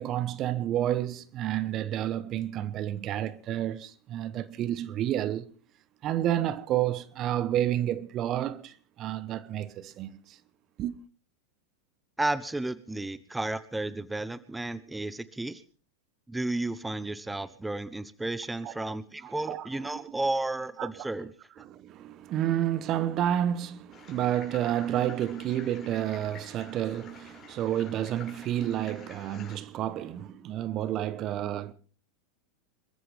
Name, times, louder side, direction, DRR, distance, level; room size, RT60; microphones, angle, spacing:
voice 1, 0.0-5.5 6.0-10.4 10.8-10.9 18.6-18.9 19.2-20.0 20.8-20.9 21.6-31.7, right 11 dB, 40° right, 1.1 m, -30 dB
voice 2, 12.2-15.6 16.3-21.3, right 2 dB, 10° right, 1.1 m, -32 dB
sound 1, 23.9-29.6, left 7 dB, 30° left, 6.6 m, -50 dB
27.0 x 14.0 x 3.5 m
hypercardioid pair, 100°, 0 cm